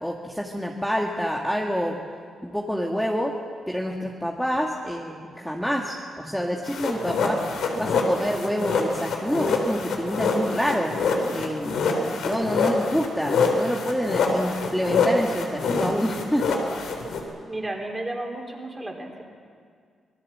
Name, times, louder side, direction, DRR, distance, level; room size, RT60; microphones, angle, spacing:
voice 1, 0.0-2.0 2.4-3.3 3.7-7.4 7.7-10.9 11.3-11.8 12.2-16.6, equal, ahead, -1 dB, 1.7 m, -27 dB
Scratching Couch, 6.6-17.2, left 4 dB, 85° left, 3.6 m, -25 dB
voice 2, 17.5-19.2, right 1 dB, 15° right, 1 dB, 3.8 m, -33 dB
26.0 x 19.0 x 7.4 m, 2.1 s
cardioid pair, 110°, 0 cm